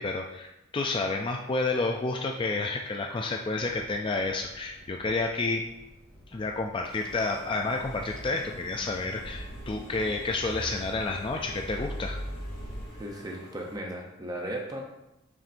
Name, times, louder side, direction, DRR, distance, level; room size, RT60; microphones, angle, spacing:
voice 1, 0.0-5.6 6.3-12.2, left 3 dB, 25° left, 2 dB, 0.3 m, -30 dB
sound 1, 3.5-12.9, equal, 5° left, 1.9 m, -42 dB
Engine / Mechanisms, 6.9-13.8, equal, 45° left, 2.0 m, -50 dB
voice 2, 13.0-14.8, right 1 dB, 20° right, 0 dB, 0.6 m, -36 dB
7.0 x 6.2 x 2.6 m, 0.95 s
head